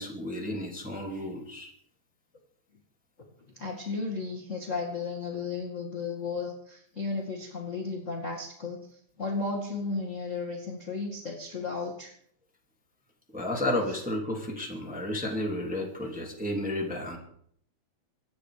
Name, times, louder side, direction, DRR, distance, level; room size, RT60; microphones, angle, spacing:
voice 1, 0.0-1.7 13.3-17.2, left 1 dB, 5° right, -1 dB, 2.4 m, -32 dB
voice 2, 3.5-12.1, left 4 dB, 30° left, 0 dB, 2.0 m, -34 dB
25.0 x 9.7 x 5.0 m, 0.65 s
omnidirectional pair, 3.7 m